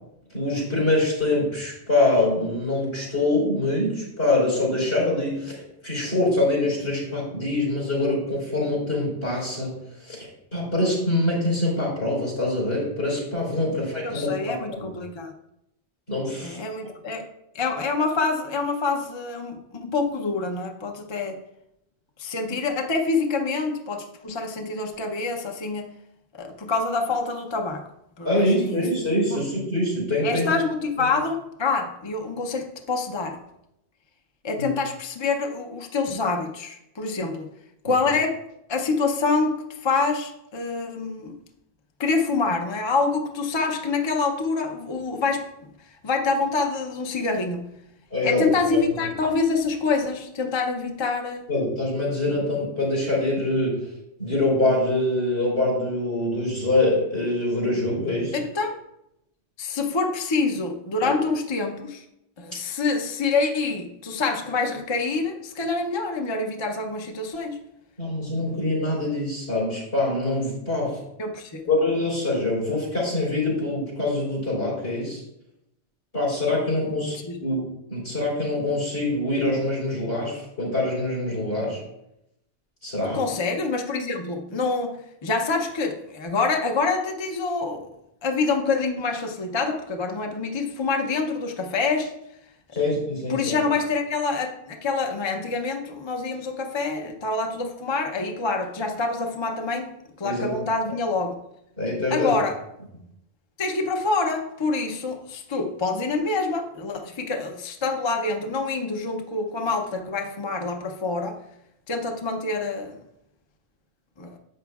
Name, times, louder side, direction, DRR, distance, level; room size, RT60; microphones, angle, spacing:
voice 1, 0.3-9.7 10.0-14.9 16.1-16.6 28.2-30.5 34.6-34.7 48.1-48.5 51.5-53.9 54.2-58.4 61.0-61.1 68.0-71.0 71.7-75.2 76.1-81.8 82.8-83.2 92.7-93.6 100.2-100.5 101.8-102.4, left 2 dB, 75° left, -3 dB, 4.1 m, -24 dB
voice 2, 14.0-15.3 16.4-17.3 17.5-21.4 22.2-25.9 26.3-27.9 28.2-28.8 29.3-29.4 30.2-33.4 34.4-37.5 37.8-38.4 38.7-41.4 42.0-45.5 46.0-47.7 48.2-51.5 58.3-58.8 59.6-62.0 62.4-67.6 71.2-71.6 76.9-77.4 83.1-87.9 88.2-92.1 92.8-92.9 93.3-99.9 100.2-101.4 102.1-102.6 103.6-111.4 111.9-113.0 114.2-114.4, left 4 dB, 30° left, 3 dB, 0.7 m, -26 dB
11.0 x 7.8 x 2.4 m, 0.83 s
omnidirectional pair, 1.1 m